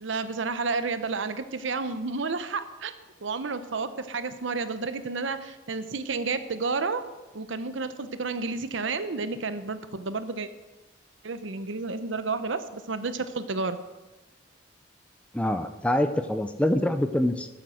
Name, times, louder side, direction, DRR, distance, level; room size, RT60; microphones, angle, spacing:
voice 1, 0.0-2.9 3.2-7.0 7.3-10.5 11.2-13.8, right 4 dB, 75° right, 11 dB, 0.8 m, -31 dB
voice 2, 15.3-17.5, left 1 dB, 5° left, 9 dB, 0.5 m, -25 dB
12.0 x 8.0 x 6.3 m, 1.1 s
head